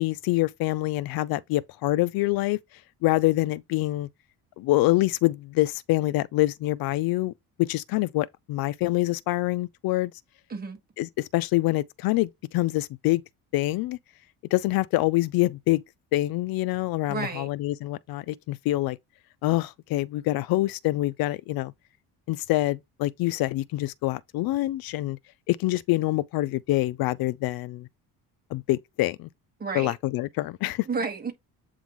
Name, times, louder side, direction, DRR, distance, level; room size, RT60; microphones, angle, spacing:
voice 1, 0.0-2.6 3.0-4.1 4.6-7.3 7.6-10.1 11.0-13.2 13.5-14.0 14.5-15.8 16.1-19.0 19.4-21.7 22.3-25.2 25.5-27.9 28.5-29.3 29.7-30.9, left 18 dB, 70° left, 0.5 m, -25 dB
voice 2, 17.1-17.5 29.6-29.9 30.9-31.3, right 4 dB, 25° right, 1.6 m, -31 dB
8.0 x 3.9 x 3.0 m
cardioid pair, 130°, 37 cm